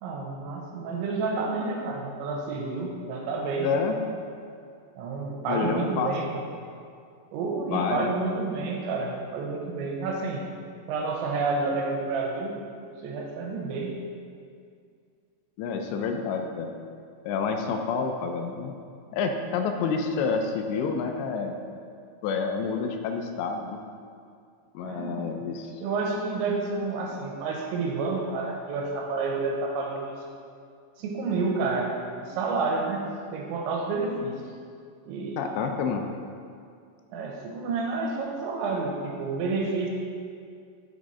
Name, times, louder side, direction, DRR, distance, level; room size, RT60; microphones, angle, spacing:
voice 1, 0.0-4.0 5.0-6.4 7.3-10.4 10.9-12.6 12.9-13.9 24.8-25.5 25.8-30.1 31.0-33.0 33.3-34.4 35.1-35.4 37.1-39.9, right 3 dB, 85° right, 0 dB, 3.2 m, -29 dB
voice 2, 3.6-3.9 5.5-6.1 7.7-8.1 15.6-16.7 17.2-18.7 19.1-21.6 22.2-23.8 24.7-25.7 35.4-36.1, left 5 dB, 85° left, 5 dB, 2.7 m, -28 dB
6.9 x 6.2 x 4.1 m, 2.3 s
omnidirectional pair, 5.2 m